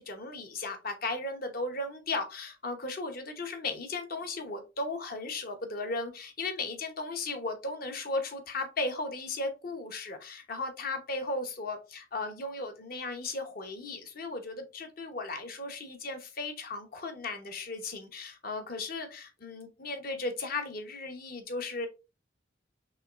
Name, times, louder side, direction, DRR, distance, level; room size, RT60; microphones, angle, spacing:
voice 1, 0.0-21.9, left 3 dB, 50° left, 0.9 m, -36 dB
5.5 x 3.0 x 2.4 m
head